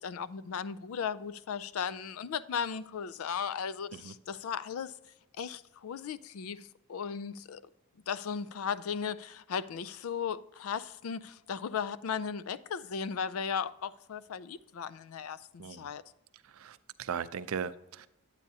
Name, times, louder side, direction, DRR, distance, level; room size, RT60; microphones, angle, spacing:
voice 1, 0.0-4.9 5.4-7.6 8.1-16.0, left 7 dB, 80° left, 0.4 m, -36 dB
voice 2, 15.6-15.9 16.5-18.1, right 6 dB, 80° right, 0.5 m, -38 dB
9.6 x 8.3 x 2.7 m
head